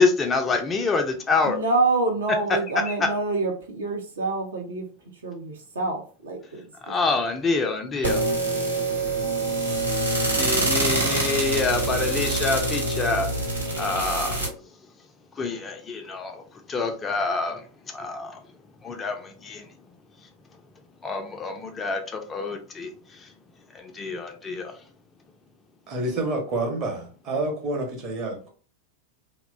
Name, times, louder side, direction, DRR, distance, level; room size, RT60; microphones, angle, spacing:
voice 1, 0.0-1.6 2.9-3.0 6.8-8.2 10.3-14.6 15.3-18.4 18.8-19.7 21.0-23.3 23.7-24.7, left 4 dB, 20° left, 0.4 m, -27 dB
voice 2, 1.4-4.9 5.2-6.9, right 3 dB, 65° right, 0.6 m, -27 dB
sound 1, 8.0-14.5, right 2 dB, 85° right, 0.9 m, -25 dB
voice 3, 25.9-28.5, right 2 dB, 35° right, 0.8 m, -28 dB
2.8 x 2.1 x 2.4 m
figure-of-eight pair, 90°, 0 cm